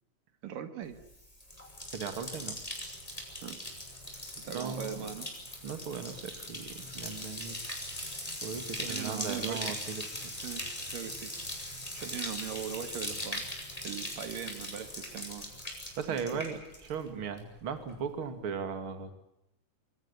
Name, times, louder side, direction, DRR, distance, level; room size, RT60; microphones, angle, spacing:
voice 1, 0.4-1.0 3.4-3.6 4.4-5.3 8.8-9.7 10.4-11.3 11.9-13.5 13.8-15.5 16.1-16.4, right 9 dB, 85° right, 9 dB, 3.5 m, -40 dB
Bathtub (filling or washing), 1.0-17.1 17.4-17.9, left 1 dB, 10° left, 5.7 m, -40 dB
voice 2, 1.9-2.6 4.5-5.1 5.6-7.7 8.4-10.1 16.0-19.2, right 6 dB, 40° right, 8 dB, 3.1 m, -37 dB
26.5 x 23.5 x 7.2 m, 0.81 s
omnidirectional pair, 3.8 m